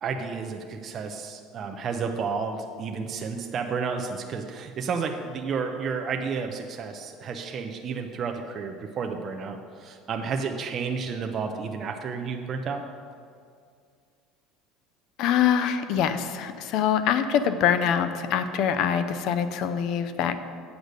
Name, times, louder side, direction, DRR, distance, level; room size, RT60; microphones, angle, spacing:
voice 1, 0.0-12.8, right 5 dB, 30° right, 4 dB, 0.5 m, -31 dB
voice 2, 15.2-20.4, left 8 dB, 55° left, 11 dB, 0.5 m, -24 dB
8.0 x 5.1 x 6.5 m, 2.2 s
cardioid pair, 155°, 0 cm